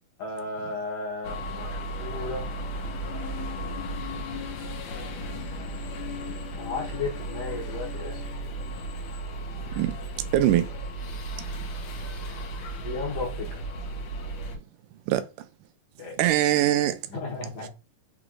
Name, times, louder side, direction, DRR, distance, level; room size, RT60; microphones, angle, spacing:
voice 1, 0.2-2.5 3.7-5.1 6.6-8.2 12.8-13.7 16.0-16.2 17.1-17.7, left 3 dB, 60° left, 1.9 m, -35 dB
sound 1, 1.2-14.6, right 1 dB, 85° left, 2.5 m, -35 dB
voice 2, 10.3-10.7 15.1-15.5 16.2-17.0 17.6-17.7, right 13 dB, 85° right, 2.1 m, -23 dB
6.1 x 3.1 x 2.5 m
omnidirectional pair, 3.6 m